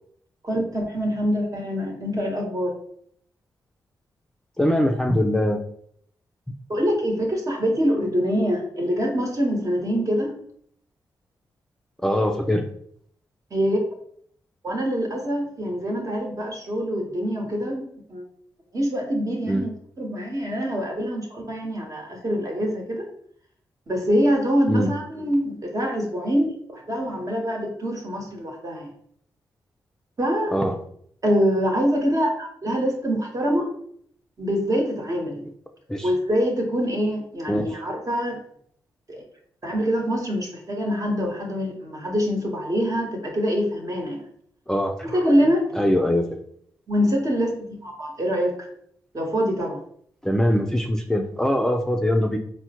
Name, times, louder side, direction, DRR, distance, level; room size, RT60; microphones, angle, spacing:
voice 1, 0.4-2.7 6.7-10.4 13.5-13.8 14.6-18.2 18.7-19.7 20.0-23.1 23.9-28.9 30.2-30.5 31.2-33.7 34.4-35.4 36.0-38.4 39.1-39.2 39.6-44.2 45.0-45.7 46.9-48.7 49.1-49.8, equal, 45° right, 1 dB, 1.1 m, -24 dB
voice 2, 4.6-5.6 12.0-12.6 19.5-19.6 24.7-24.9 30.5-30.8 35.9-36.1 37.5-37.8 44.7-45.0 45.7-46.4 50.2-52.4, equal, 5° left, 3 dB, 0.4 m, -22 dB
4.2 x 2.1 x 2.9 m, 0.64 s
supercardioid pair, 45°, 8 cm